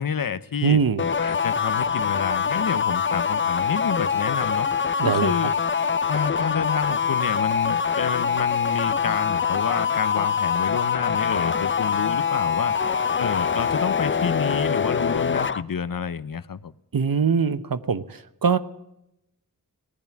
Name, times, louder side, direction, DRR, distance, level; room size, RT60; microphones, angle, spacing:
voice 1, 0.0-0.8 1.2-4.7 5.0-5.5 6.1-12.8 13.2-16.7, left 6 dB, 75° left, 16 dB, 0.8 m, -29 dB
voice 2, 0.6-1.1 5.0-5.3 16.9-18.6, right 6 dB, 75° right, 14 dB, 0.9 m, -22 dB
sound 1, 1.0-15.6, left 6 dB, 35° left, 0.6 m, -24 dB
18.5 x 10.5 x 7.3 m, 0.82 s
wide cardioid pair, 65°, 34 cm